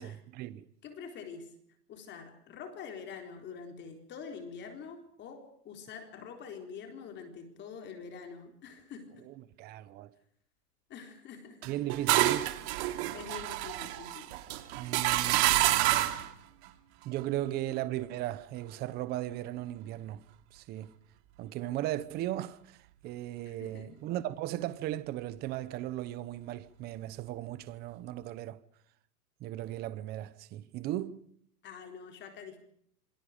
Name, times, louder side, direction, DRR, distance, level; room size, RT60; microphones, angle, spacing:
voice 1, 0.0-0.7 9.3-10.1 11.6-12.5 14.7-16.1 17.0-20.2 20.5-20.9 21.4-22.8 23.0-28.6 29.4-31.3, right 14 dB, 20° right, 0.9 m, -37 dB
voice 2, 0.8-1.5 1.9-9.3 10.9-12.0 12.9-14.3 23.4-24.0 31.6-32.6, left 6 dB, 25° left, 4.0 m, -46 dB
sound 1, 11.6-16.3, right 15 dB, 45° right, 2.8 m, -28 dB
27.0 x 25.5 x 5.2 m
hypercardioid pair, 145°, 46 cm